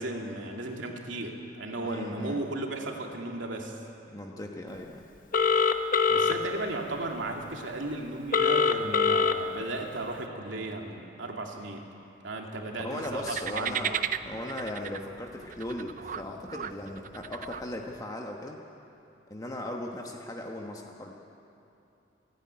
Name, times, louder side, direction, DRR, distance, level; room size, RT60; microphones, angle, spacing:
voice 1, 0.0-3.8 6.1-11.9 12.2-13.9, right 2 dB, 80° right, 1 dB, 2.6 m, -35 dB
voice 2, 1.8-2.4 4.1-5.1 12.8-13.9 14.2-18.6 19.3-21.1, left 1 dB, 20° left, 0 dB, 1.2 m, -38 dB
Telephone, 5.3-6.3 8.3-9.3, left 5 dB, 45° left, 0.9 m, -23 dB
sound 1, 13.0-18.0, right 8 dB, 45° right, 0.6 m, -36 dB
27.5 x 10.5 x 9.6 m, 2.8 s
head